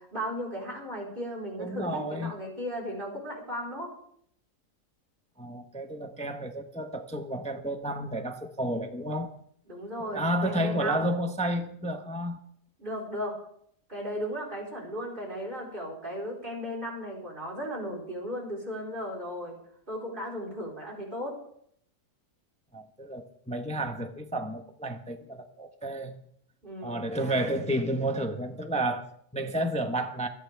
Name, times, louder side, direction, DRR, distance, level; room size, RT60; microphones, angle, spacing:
voice 1, 0.0-3.9 9.7-11.1 12.8-13.4 13.9-19.6 19.9-21.4 26.6-27.5, equal, 30° right, -2 dB, 4.4 m, -36 dB
voice 2, 1.6-2.3 5.4-9.3 10.0-12.4 22.7-26.2 26.8-30.3, right 1 dB, 5° left, 6 dB, 0.6 m, -31 dB
27.0 x 9.0 x 3.4 m, 0.67 s
omnidirectional pair, 1.8 m